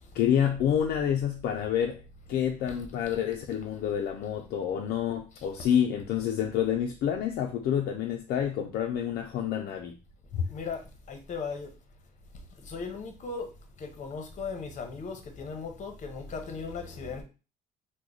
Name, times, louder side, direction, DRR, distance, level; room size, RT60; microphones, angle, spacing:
voice 1, 0.1-2.0 2.3-10.0 10.3-10.4, left 9 dB, 65° left, 0.4 m, -28 dB
voice 2, 2.3-2.8 3.0-3.2 5.3-5.5 10.3-10.8 11.1-11.7 12.6-13.5 13.8-17.2, left 4 dB, 45° left, 0.8 m, -38 dB
3.0 x 2.1 x 3.8 m
cardioid pair, 110°, 17 cm